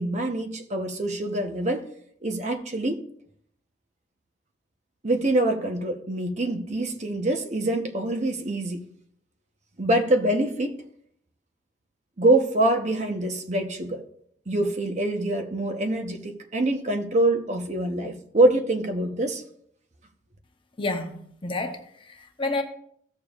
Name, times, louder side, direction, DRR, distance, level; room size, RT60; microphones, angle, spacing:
voice 1, 0.0-1.8 2.2-3.0 5.0-8.8 9.8-10.8 12.2-14.0 14.5-19.4, right 1 dB, 40° right, 0.9 m, -25 dB
voice 2, 20.8-22.6, left 2 dB, 30° left, 0.8 m, -30 dB
15.0 x 6.9 x 2.4 m
head